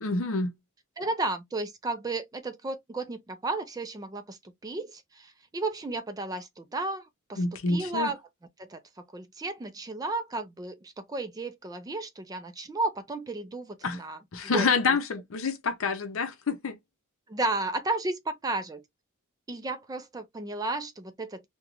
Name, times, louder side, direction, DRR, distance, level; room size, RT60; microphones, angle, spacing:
voice 1, 0.0-0.5 7.4-8.1 13.8-14.0 14.3-16.8, left 4 dB, 65° left, 0.6 m, -27 dB
voice 2, 1.0-8.2 8.6-8.8 9.1-14.2 14.5-15.0 17.3-18.8 19.5-21.4, right 2 dB, 15° right, 0.4 m, -33 dB
3.0 x 2.2 x 2.4 m
head